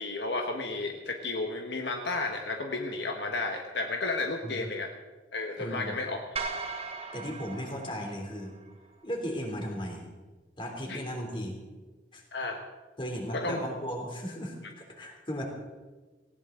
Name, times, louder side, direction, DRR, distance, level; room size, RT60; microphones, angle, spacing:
voice 1, 0.0-4.9 5.3-6.2 10.9-11.0 12.3-12.6 13.3-13.6, left 3 dB, 70° left, 3 dB, 1.3 m, -32 dB
voice 2, 5.6-6.0 7.1-8.5 9.0-10.1 10.6-11.6 12.1-12.2 13.0-15.5, equal, 30° left, 1 dB, 3.1 m, -36 dB
sound 1, 6.4-8.7, right 4 dB, 35° right, 1.6 m, -38 dB
19.0 x 17.0 x 3.9 m, 1.3 s
head